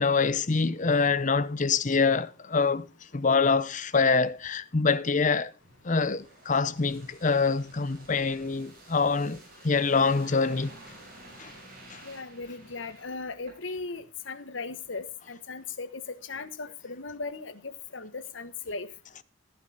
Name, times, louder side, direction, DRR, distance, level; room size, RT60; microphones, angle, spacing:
voice 1, 0.0-2.9 3.1-5.5 5.8-10.7 11.4-11.5 11.9-12.0, left 4 dB, 40° left, 0.7 m, -25 dB
sound 1, 5.6-13.9 14.3-14.4, right 1 dB, 45° right, 7.2 m, -51 dB
voice 2, 12.0-18.9, left 4 dB, 70° left, 1.3 m, -38 dB
14.5 x 10.0 x 4.1 m
head